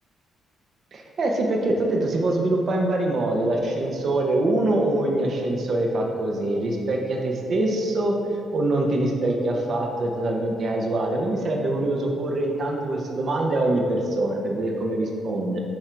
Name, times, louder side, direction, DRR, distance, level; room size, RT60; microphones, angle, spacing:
voice 1, 0.9-8.1 8.5-15.6, right 2 dB, 55° right, 1 dB, 0.8 m, -24 dB
8.9 x 3.8 x 4.6 m, 2.4 s
cardioid pair, 90°, 0 cm